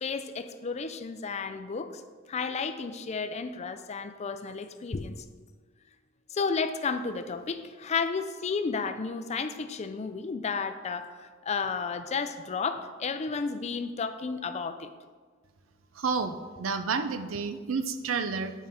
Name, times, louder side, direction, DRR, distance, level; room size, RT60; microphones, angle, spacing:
voice 1, 0.0-2.0 2.3-5.2 6.3-14.9, left 5 dB, 35° left, 9 dB, 0.4 m, -32 dB
voice 2, 16.0-18.5, right 5 dB, 75° right, 10 dB, 0.5 m, -30 dB
8.8 x 5.4 x 3.6 m, 1.5 s
head